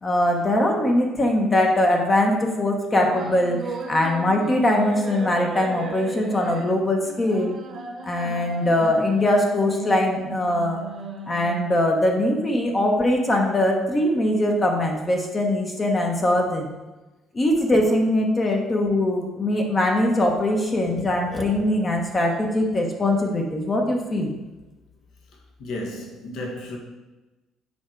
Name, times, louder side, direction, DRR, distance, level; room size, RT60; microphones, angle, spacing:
voice 1, 0.0-7.6 8.0-10.8 11.3-16.7 17.3-24.3, left 1 dB, 20° left, 1.0 m, -22 dB
sound 1, 2.9-11.9, right 3 dB, 40° right, 1.1 m, -36 dB
voice 2, 25.6-26.8, left 1 dB, 60° left, 1.5 m, -33 dB
7.1 x 4.9 x 4.4 m
cardioid pair, 150°, 0 cm